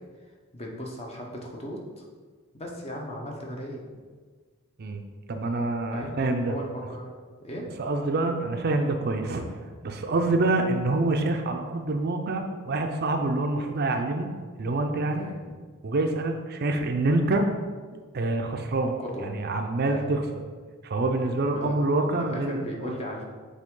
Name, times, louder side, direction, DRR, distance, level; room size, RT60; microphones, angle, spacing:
voice 1, 0.5-2.0 2.5-3.8 5.9-6.2 6.5-7.7 10.2-10.4 15.1-15.4 19.0-19.3 19.9-20.1 21.5-21.8 22.0-23.2, equal, 30° left, 0 dB, 0.8 m, -37 dB
voice 2, 5.3-6.5 7.8-9.5 9.8-14.3 14.6-15.3 15.8-17.4 18.1-18.9 19.2-20.2 20.8-23.0, right 2 dB, 50° right, 5 dB, 0.5 m, -26 dB
7.5 x 3.4 x 3.7 m, 1.5 s
head